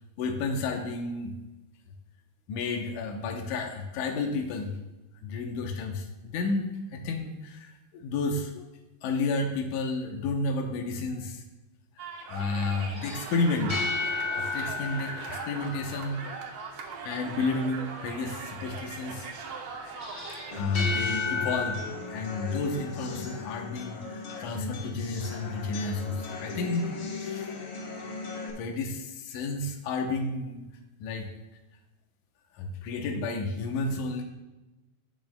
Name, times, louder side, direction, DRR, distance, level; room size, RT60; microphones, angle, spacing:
voice 1, 0.2-1.3 2.5-4.7 5.2-8.6 9.0-11.4 12.0-13.8 14.3-16.3 17.0-19.3 20.5-21.8 22.1-27.5 28.6-30.6 31.0-31.3 32.5-34.2, left 3 dB, 80° left, 3 dB, 2.4 m, -31 dB
sound 1, 12.0-20.6, right 5 dB, 65° right, 1.6 m, -40 dB
sound 2, 12.9-16.4 20.0-21.8, left 4 dB, 35° left, 2.7 m, -32 dB
sound 3, 20.5-28.5, left 4 dB, 55° left, 1.6 m, -38 dB
15.5 x 6.2 x 2.2 m, 1.1 s
omnidirectional pair, 3.5 m